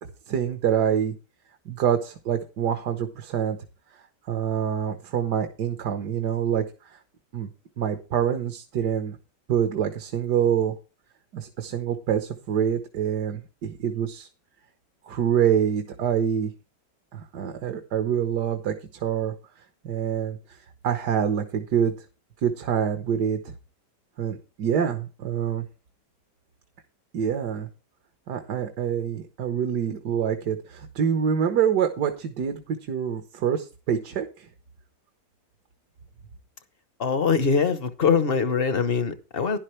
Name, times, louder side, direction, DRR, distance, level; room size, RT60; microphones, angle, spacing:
voice 1, 0.0-1.1 1.6-3.6 4.3-6.6 6.9-7.0 7.3-7.5 7.8-9.2 9.5-10.7 11.3-14.3 15.1-16.5 17.1-19.3 19.8-20.4 20.8-21.9 22.4-23.5 24.2-25.6 27.1-27.7 28.3-34.5, right 8 dB, 75° right, 6 dB, 1.7 m, -26 dB
voice 2, 37.0-39.6, left 5 dB, 40° left, 11 dB, 0.9 m, -23 dB
11.5 x 11.0 x 3.2 m, 0.32 s
omnidirectional pair, 1.8 m